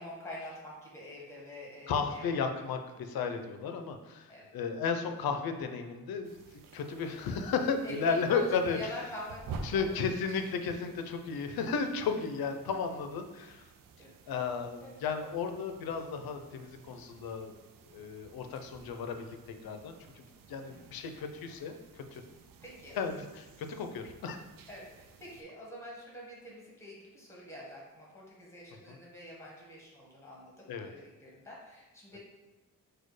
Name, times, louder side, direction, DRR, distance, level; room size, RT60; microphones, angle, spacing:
voice 1, 0.0-2.3 2.5-2.7 4.3-4.5 7.8-10.0 14.0-14.4 14.8-15.0 20.7-21.0 22.6-23.0 24.7-32.2, left 1 dB, 10° left, -4 dB, 1.1 m, -46 dB
voice 2, 1.9-6.4 6.7-8.9 9.6-13.6 14.3-17.5 17.9-19.4 19.6-22.2 23.0-24.4 28.9-29.0 30.7-30.9 32.1-32.2, left 5 dB, 85° left, 6 dB, 0.6 m, -34 dB
sound 1, 6.2-25.4, right 4 dB, 70° right, 0.5 m, -51 dB
4.2 x 2.3 x 4.7 m, 1.2 s
wide cardioid pair, 165°, 35 cm